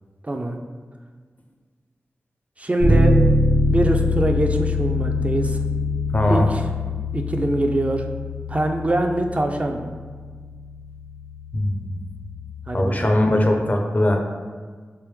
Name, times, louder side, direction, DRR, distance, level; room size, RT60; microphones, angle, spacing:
voice 1, 0.2-0.6 2.6-3.2 3.6-5.6 6.3-6.7 7.1-8.0 8.5-9.9 12.7-13.2, right 1 dB, 30° right, 3 dB, 0.3 m, -23 dB
Bass guitar, 2.8-12.6, left 2 dB, 90° left, 1.3 m, -24 dB
voice 2, 6.1-6.5 11.5-12.0 12.7-14.2, left 1 dB, 35° left, 2 dB, 0.5 m, -20 dB
3.4 x 2.9 x 3.1 m, 1.5 s
cardioid pair, 45°, 5 cm